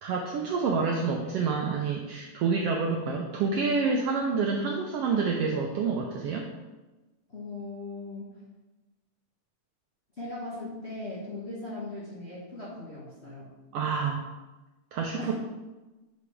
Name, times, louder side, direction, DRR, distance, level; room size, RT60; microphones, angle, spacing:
voice 1, 0.0-6.5 13.7-14.2 14.9-15.4, right 4 dB, 75° right, 1 dB, 1.5 m, -28 dB
voice 2, 7.3-8.3 10.2-13.5 15.2-15.4, left 2 dB, 45° left, -6 dB, 0.8 m, -39 dB
6.9 x 5.1 x 4.9 m, 1.1 s
omnidirectional pair, 3.3 m